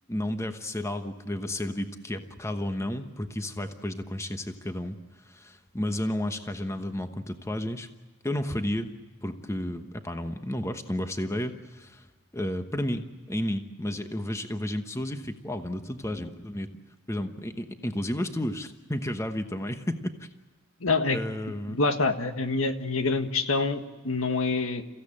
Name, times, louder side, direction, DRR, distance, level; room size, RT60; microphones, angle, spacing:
voice 1, 0.1-7.9 8.2-8.9 9.2-12.1 12.3-16.7 17.1-20.3 21.1-21.8, left 1 dB, 15° left, 7 dB, 1.1 m, -32 dB
voice 2, 20.8-21.2 21.7-24.8, left 3 dB, 80° left, 8 dB, 1.6 m, -26 dB
29.5 x 16.0 x 8.7 m, 1.3 s
head